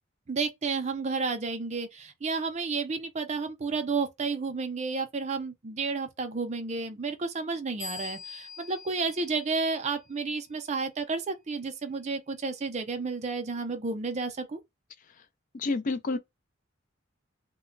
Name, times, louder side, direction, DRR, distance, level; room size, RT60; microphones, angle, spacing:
voice 1, 0.3-14.6, right 4 dB, 35° right, 0.5 m, -31 dB
sound 1, 7.8-10.3, left 4 dB, 75° left, 1.3 m, -44 dB
voice 2, 15.5-16.2, left 3 dB, 40° left, 0.4 m, -29 dB
2.1 x 2.1 x 3.7 m
head